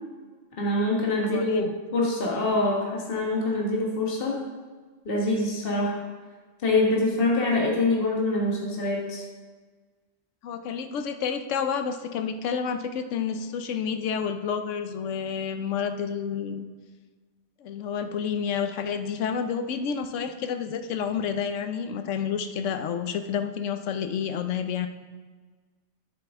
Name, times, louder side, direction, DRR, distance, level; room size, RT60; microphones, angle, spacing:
voice 1, 0.6-1.6 1.9-4.4 5.0-6.0 6.6-9.2, left 2 dB, 50° left, -3 dB, 1.6 m, -25 dB
voice 2, 1.2-1.7 10.4-16.6 17.6-24.9, left 7 dB, 85° left, 8 dB, 1.0 m, -29 dB
9.9 x 7.6 x 3.6 m, 1.4 s
omnidirectional pair, 1.2 m